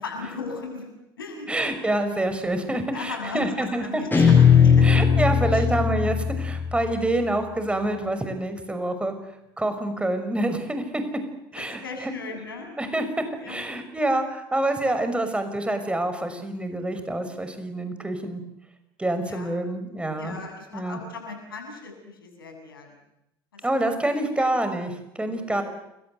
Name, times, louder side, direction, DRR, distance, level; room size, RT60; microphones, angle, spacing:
voice 1, 0.0-0.9 1.2-1.5 2.9-5.0 5.5-5.6 11.6-12.8 13.4-13.6 19.2-19.5 20.2-23.0 23.5-23.7 24.4-24.5 25.3-25.6, left 4 dB, 75° left, 4 dB, 7.6 m, -37 dB
voice 2, 1.5-4.0 4.8-9.1 9.6-11.0 11.5-12.1 12.6-18.4 19.0-20.4 20.7-21.0 23.6-25.6, right 1 dB, 10° right, 8 dB, 5.9 m, -27 dB
Guitar, 4.1-7.3, left 7 dB, 15° left, 7.1 m, -19 dB
30.0 x 23.0 x 8.1 m, 0.88 s
figure-of-eight pair, 65°, 12 cm